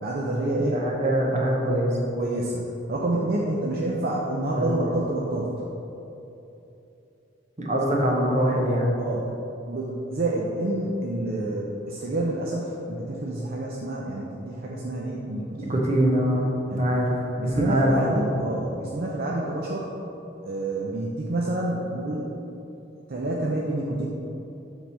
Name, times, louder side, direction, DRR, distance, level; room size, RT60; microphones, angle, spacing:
voice 1, 0.0-0.8 2.2-5.5 9.0-9.3 9.7-15.8 16.7-16.9 17.4-19.9 20.4-22.3 23.1-24.1, right 1 dB, 55° right, -3 dB, 0.7 m, -28 dB
voice 2, 0.7-1.9 4.6-4.8 7.6-8.9 15.7-16.5 16.8-18.1, right 1 dB, 40° right, -1 dB, 1.1 m, -23 dB
7.1 x 3.9 x 6.2 m, 3.0 s
head